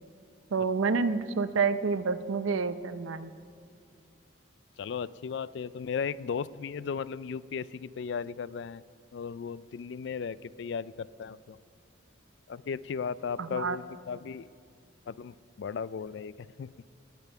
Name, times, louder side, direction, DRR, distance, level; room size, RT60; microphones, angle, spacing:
voice 1, 0.5-3.3 13.4-13.8, right 4 dB, 90° right, 12 dB, 0.6 m, -28 dB
voice 2, 4.8-8.8 9.1-11.6 12.5-14.5 15.1-16.7, left 6 dB, 60° left, 19 dB, 0.3 m, -36 dB
18.5 x 8.9 x 5.5 m, 2.3 s
head